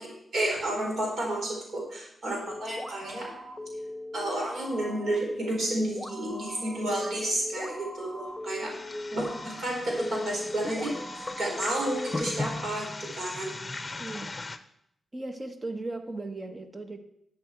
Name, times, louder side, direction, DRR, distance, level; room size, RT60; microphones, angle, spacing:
voice 1, 0.0-3.3 4.1-8.7 9.1-10.9 11.4-14.0, right 1 dB, 65° right, -1 dB, 4.2 m, -31 dB
sound 1, 2.5-12.6, left 1 dB, 5° left, 1.0 m, -39 dB
sound 2, 8.5-14.6, left 2 dB, 30° left, 0.7 m, -38 dB
voice 2, 14.0-14.4 15.1-17.0, right 2 dB, 30° right, 6 dB, 1.4 m, -37 dB
11.5 x 7.8 x 4.5 m, 0.76 s
cardioid pair, 60°, 0 cm